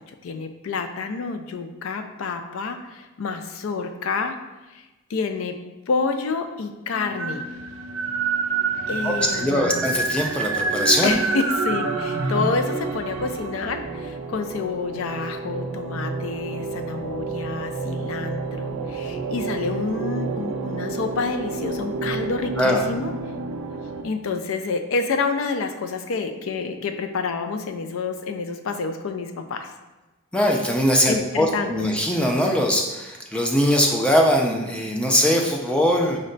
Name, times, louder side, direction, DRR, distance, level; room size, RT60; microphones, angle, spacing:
voice 1, 0.0-4.4 4.7-5.6 5.9-7.5 8.9-9.8 11.0-23.1 24.0-29.7 31.1-31.9, left 4 dB, 75° left, 7 dB, 0.4 m, -28 dB
sound 1, 6.9-24.0, right 4 dB, 80° right, 0.4 m, -29 dB
voice 2, 9.0-11.1 22.6-22.8 30.3-36.2, equal, 5° left, 0 dB, 0.4 m, -21 dB
5.1 x 2.2 x 3.8 m, 1.1 s
head